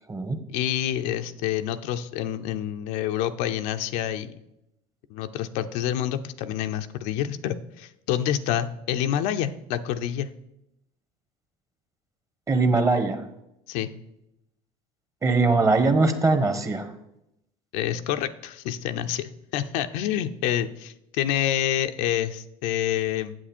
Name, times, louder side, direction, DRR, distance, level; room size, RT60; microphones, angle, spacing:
voice 1, 0.5-4.4 5.1-10.3 13.7-13.9 17.7-23.3, left 11 dB, 75° left, 9 dB, 0.6 m, -27 dB
voice 2, 12.5-13.2 15.2-16.9, right 3 dB, 25° right, 8 dB, 1.3 m, -21 dB
8.1 x 7.5 x 4.4 m, 0.84 s
supercardioid pair, 95°, 13 cm